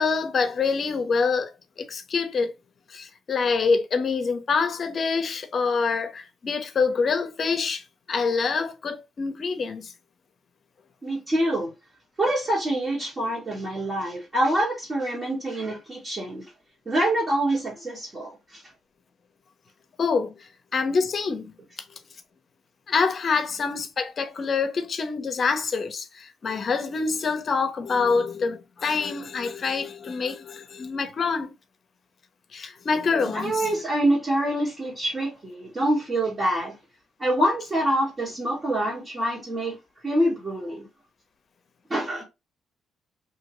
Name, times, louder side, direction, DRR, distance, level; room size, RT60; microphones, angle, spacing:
voice 1, 0.0-2.5 2.9-7.8 8.1-9.9 20.0-21.5 22.9-31.5 32.5-33.7, left 5 dB, 45° left, 0.7 m, -26 dB
voice 2, 11.0-11.7 12.2-16.5 16.8-18.6 33.3-36.7 37.2-39.8 40.0-40.9 41.9-42.2, right 1 dB, 30° right, 1.4 m, -25 dB
2.8 x 2.7 x 2.9 m
cardioid pair, 90°, 0 cm